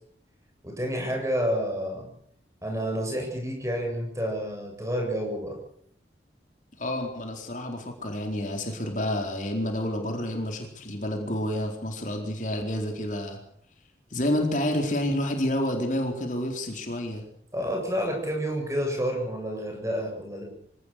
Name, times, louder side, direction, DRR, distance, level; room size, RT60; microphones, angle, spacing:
voice 1, 0.6-2.1 2.6-5.6 17.5-20.4, equal, 15° right, 2 dB, 7.5 m, -29 dB
voice 2, 6.8-13.4 14.1-17.2, left 1 dB, 45° left, 3 dB, 4.3 m, -29 dB
26.0 x 18.0 x 6.7 m, 0.67 s
head